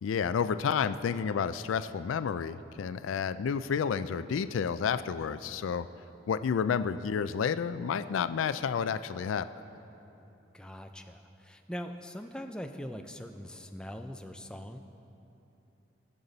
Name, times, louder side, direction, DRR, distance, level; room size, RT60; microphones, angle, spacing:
voice 1, 0.0-5.9 6.3-9.5, left 6 dB, 90° left, 13 dB, 0.4 m, -30 dB
voice 2, 10.5-14.8, equal, 5° left, 5 dB, 0.4 m, -42 dB
17.5 x 6.9 x 4.0 m, 2.9 s
head